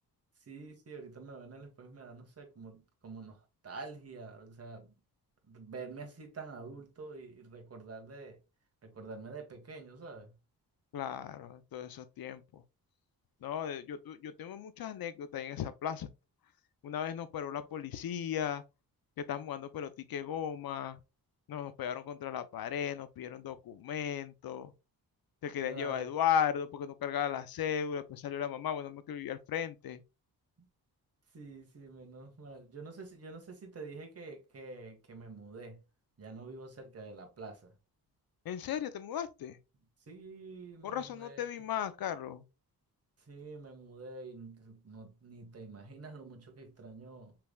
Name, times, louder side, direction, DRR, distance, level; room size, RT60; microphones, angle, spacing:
voice 1, 0.5-4.9 5.5-8.4 8.8-10.3 25.6-26.1 31.3-35.8 36.2-37.7 40.1-41.4 43.2-47.4, right 3 dB, 40° right, 1.5 m, -47 dB
voice 2, 10.9-12.6 13.4-16.1 16.8-18.6 19.2-21.0 21.5-24.7 25.4-30.0 38.4-39.6 40.8-42.4, left 9 dB, 70° left, 0.7 m, -36 dB
5.8 x 3.4 x 2.3 m
cardioid pair, 85°, 38 cm